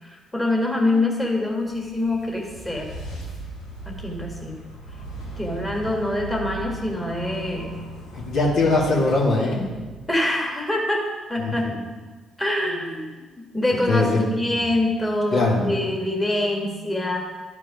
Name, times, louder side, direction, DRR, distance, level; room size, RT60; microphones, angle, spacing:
voice 1, 0.0-3.0 4.0-4.6 5.4-7.9 10.1-11.7 12.4-13.1 13.5-17.2, left 1 dB, 15° left, 0 dB, 1.9 m, -25 dB
sound 1, 1.3-10.6, right 3 dB, 85° left, 1.8 m, -38 dB
voice 2, 8.1-9.7 11.4-11.7 13.9-14.5 15.3-15.7, left 2 dB, 65° left, -5 dB, 2.5 m, -21 dB
11.5 x 4.7 x 4.9 m, 1.3 s
hypercardioid pair, 50°, 0 cm